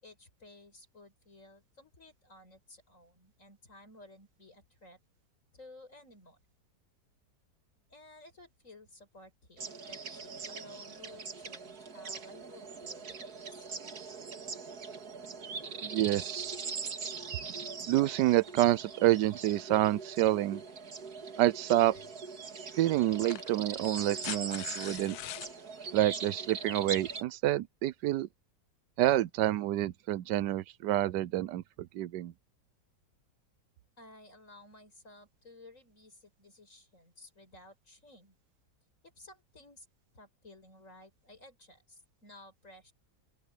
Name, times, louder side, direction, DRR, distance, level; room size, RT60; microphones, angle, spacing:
voice 1, 0.0-5.0 5.5-6.4 7.9-9.6 9.9-13.7 34.0-38.4 39.0-39.9 40.1-42.9, left 2 dB, 50° left, 6.1 m, -55 dB
sound 1, 9.6-27.2, right 5 dB, 65° right, 2.4 m, -41 dB
voice 2, 15.8-16.6 17.9-20.6 21.4-22.0 22.8-25.1 25.9-28.3 29.0-31.6 31.9-32.3, right 14 dB, 85° right, 1.3 m, -28 dB
sound 2, 22.0-22.1 23.1-25.5 27.1-27.2, left 14 dB, 70° left, 1.1 m, -43 dB
open air
omnidirectional pair, 1.8 m